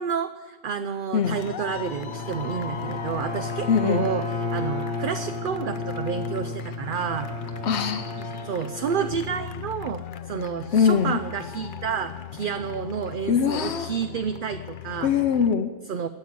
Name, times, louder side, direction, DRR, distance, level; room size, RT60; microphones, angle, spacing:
voice 1, 0.0-7.3 8.4-15.1 15.9-16.1, right 7 dB, 55° right, 9 dB, 0.7 m, -30 dB
sound 1, 1.2-15.5, left 8 dB, 55° left, 0.7 m, -39 dB
Bowed string instrument, 1.5-9.9, left 3 dB, 40° right, 3.4 m, -33 dB
voice 2, 3.7-4.1 7.6-8.1 10.7-11.2 13.3-14.0 15.0-15.7, left 7 dB, 85° left, 7 dB, 1.0 m, -22 dB
13.5 x 8.3 x 9.3 m, 1.4 s
omnidirectional pair, 1.1 m